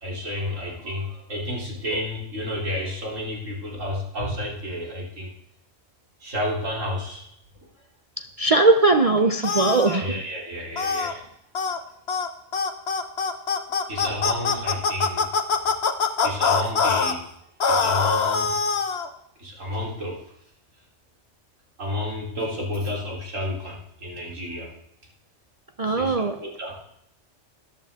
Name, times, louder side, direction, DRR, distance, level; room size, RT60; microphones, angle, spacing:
voice 1, 0.0-5.3 6.2-7.3 9.9-11.3 13.9-15.3 16.2-17.3 17.7-18.6 19.4-20.2 21.8-24.7 25.8-26.8, left 1 dB, 90° right, 3.8 m, -31 dB
voice 2, 8.2-10.1 25.8-26.4, right 3 dB, 45° right, 0.5 m, -20 dB
sound 1, 9.4-10.0 10.8-11.1 11.5-11.8 12.1-12.3 12.5-17.1 17.6-19.1, left 5 dB, 60° left, 1.2 m, -23 dB
13.5 x 11.0 x 3.6 m
omnidirectional pair, 1.3 m